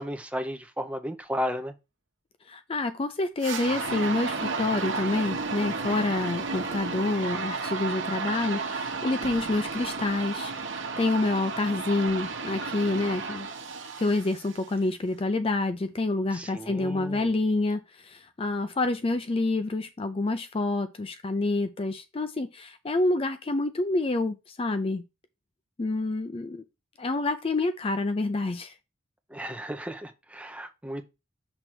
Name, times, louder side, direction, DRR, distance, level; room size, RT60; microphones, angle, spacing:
voice 1, 0.0-1.7 16.3-17.3 29.3-31.1, equal, 5° right, 0.7 m, -34 dB
voice 2, 2.5-13.5 14.0-25.0 25.8-26.6 27.0-28.7, left 2 dB, 30° left, 0.4 m, -28 dB
sound 1, 3.4-14.7, right 4 dB, 65° right, 1.1 m, -33 dB
6.2 x 3.3 x 5.9 m
head